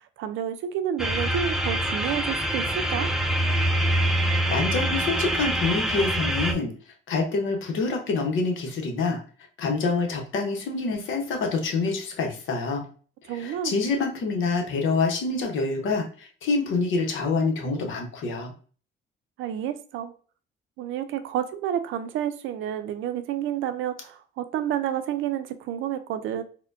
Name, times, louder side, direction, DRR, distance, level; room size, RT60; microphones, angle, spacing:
voice 1, 0.2-3.1 13.3-13.7 19.4-20.1 20.8-26.4, right 10 dB, 90° right, 0.4 m, -30 dB
sound 1, 1.0-6.5, right 1 dB, ahead, 0.5 m, -25 dB
voice 2, 4.5-6.7 7.1-9.2 9.6-12.9 13.2-18.5, left 4 dB, 80° left, 0.9 m, -26 dB
4.2 x 2.2 x 2.5 m
cardioid pair, 90°, 20 cm